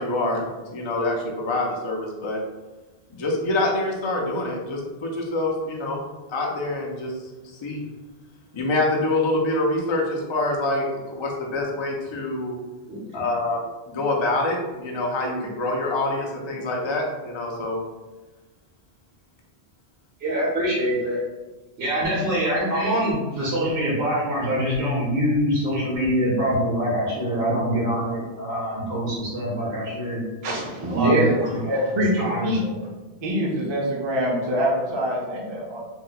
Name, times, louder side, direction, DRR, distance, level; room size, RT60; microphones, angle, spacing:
voice 1, 0.0-2.4 3.1-6.0 6.3-7.2 7.5-7.8 8.5-12.6 13.1-13.6 13.9-17.8, left 2 dB, 50° left, -1 dB, 0.3 m, -26 dB
voice 2, 12.9-13.2 20.2-21.2 21.8-30.2 30.8-31.7 32.2-32.8, equal, 70° right, -6 dB, 1.1 m, -24 dB
voice 3, 30.4-32.6 33.2-35.8, equal, 35° right, -4 dB, 0.5 m, -24 dB
2.7 x 2.1 x 3.9 m, 1.2 s
omnidirectional pair, 1.1 m